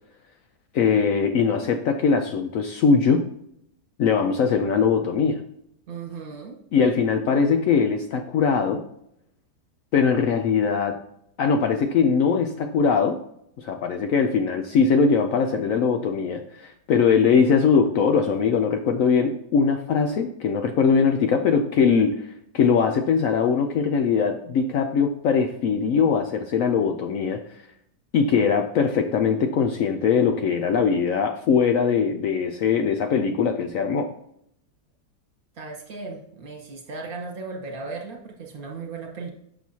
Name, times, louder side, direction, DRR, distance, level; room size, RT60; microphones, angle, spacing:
voice 1, 0.7-3.2 4.0-5.4 6.7-8.8 9.9-11.0 11.4-13.2 13.6-27.4 28.1-34.1, left 6 dB, 70° left, 6 dB, 0.8 m, -21 dB
voice 2, 5.9-6.6 35.5-39.3, right 4 dB, 60° right, 1 dB, 1.7 m, -36 dB
7.0 x 6.0 x 2.7 m, 0.73 s
omnidirectional pair, 1.8 m